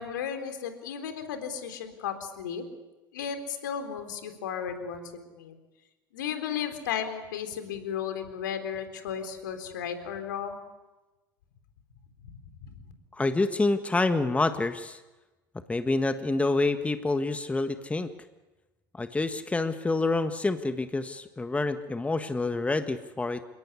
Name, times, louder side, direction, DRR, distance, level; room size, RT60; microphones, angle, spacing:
voice 1, 0.0-2.6 3.1-5.0 5.3-5.5 6.1-10.7 12.2-12.3 12.6-12.7, left 8 dB, 70° left, 7 dB, 3.9 m, -34 dB
voice 2, 13.1-15.0 15.7-18.1 18.9-23.4, left 2 dB, 10° left, 9 dB, 1.5 m, -27 dB
29.5 x 18.5 x 9.7 m, 1.1 s
figure-of-eight pair, 75°, 11 cm